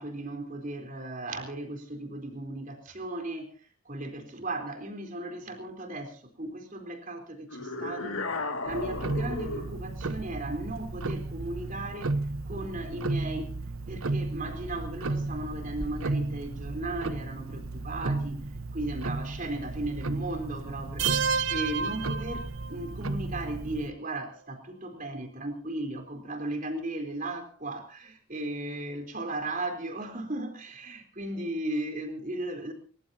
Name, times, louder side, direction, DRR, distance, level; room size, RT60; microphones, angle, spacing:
voice 1, 0.0-8.2 8.6-12.2 12.5-13.6 13.9-32.7, right 1 dB, 40° right, 5 dB, 4.0 m, -36 dB
sound 1, 7.5-9.8, left 3 dB, 85° left, 2.4 m, -34 dB
Tick-tock, 8.7-23.9, right 2 dB, 85° right, 1.1 m, -34 dB
sound 2, 21.0-23.0, right 6 dB, 60° right, 0.8 m, -30 dB
29.5 x 15.0 x 2.9 m, 0.37 s
head